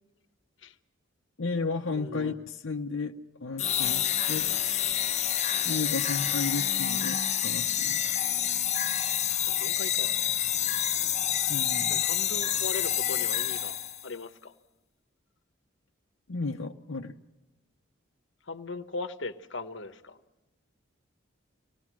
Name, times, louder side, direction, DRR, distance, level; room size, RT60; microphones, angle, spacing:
voice 1, 1.4-3.1 3.4-4.5 5.6-8.1 11.5-12.0 16.3-17.1, left 3 dB, 80° left, 2 dB, 0.9 m, -33 dB
voice 2, 1.9-2.4 9.3-10.1 11.9-13.8 14.0-14.5 18.4-20.2, left 3 dB, 65° left, 10 dB, 1.1 m, -39 dB
sound 1, 3.6-14.1, left 10 dB, 35° left, 0.9 m, -28 dB
26.0 x 19.0 x 6.1 m, 1.1 s
head